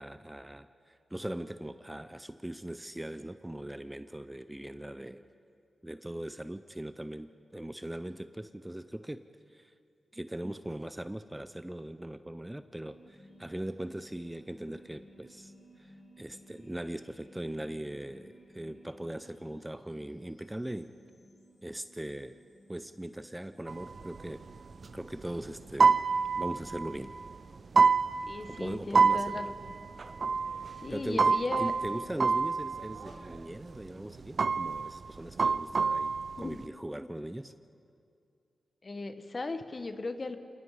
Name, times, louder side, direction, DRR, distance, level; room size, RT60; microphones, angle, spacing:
voice 1, 0.0-5.3 5.8-9.2 9.5-9.7 10.1-15.5 15.8-20.9 21.6-22.4 22.7-24.4 24.9-25.9 26.4-27.1 28.5-29.5 30.9-37.5, right 1 dB, 10° right, 11 dB, 0.6 m, -40 dB
sound 1, 12.8-32.1, equal, 70° left, 5.7 m, -58 dB
sound 2, 23.7-24.9 25.2-25.3 25.7-27.4 27.7-28.7 28.9-33.4 33.7-34.0 34.3-36.6, right 5 dB, 55° right, 0.4 m, -27 dB
voice 2, 28.2-29.7 30.8-31.7 36.4-36.6 38.8-40.4, left 3 dB, 40° left, 9 dB, 1.3 m, -37 dB
28.0 x 19.5 x 4.9 m, 2.4 s
cardioid pair, 75°, 0 cm